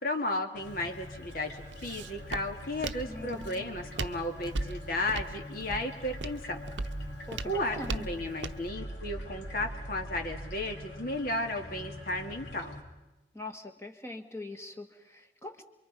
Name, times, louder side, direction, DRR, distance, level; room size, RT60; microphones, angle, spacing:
voice 1, 0.0-6.6 7.4-12.8, left 1 dB, 50° left, 4 dB, 2.3 m, -34 dB
sound 1, 0.6-12.8, left 1 dB, 65° left, 3.4 m, -43 dB
Walk footsteps, 0.6-8.7, right 3 dB, 75° right, 0.8 m, -40 dB
voice 2, 3.1-3.8 7.3-8.1 13.3-15.6, left 2 dB, 15° left, 5 dB, 1.7 m, -42 dB
28.0 x 23.5 x 5.4 m, 1.1 s
head